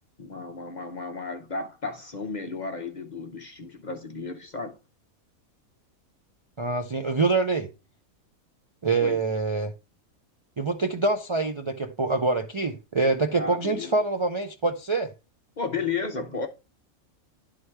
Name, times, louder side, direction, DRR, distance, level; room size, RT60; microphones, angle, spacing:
voice 1, 0.2-4.8 9.0-9.2 13.3-13.9 15.6-16.5, left 4 dB, 45° left, 0.6 m, -33 dB
voice 2, 6.6-7.7 8.8-9.7 10.6-15.1, right 3 dB, 50° right, 0.3 m, -25 dB
11.0 x 3.9 x 3.3 m
omnidirectional pair, 1.5 m